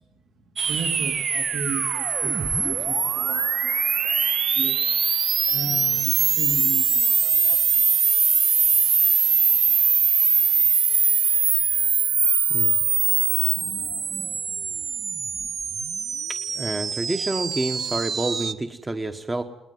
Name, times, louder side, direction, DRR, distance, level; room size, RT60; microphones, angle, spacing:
sound 1, 0.6-18.5, right 6 dB, 50° right, 1.0 m, -22 dB
voice 1, 0.6-3.7 4.0-4.2 4.5-4.8 5.5-7.9 13.5-14.7 15.1-15.2, right 3 dB, 70° right, 3 dB, 2.6 m, -36 dB
voice 2, 16.3-19.4, right 2 dB, 20° right, 6 dB, 1.2 m, -28 dB
20.5 x 19.0 x 9.4 m, 0.96 s
cardioid pair, 90°, 0 cm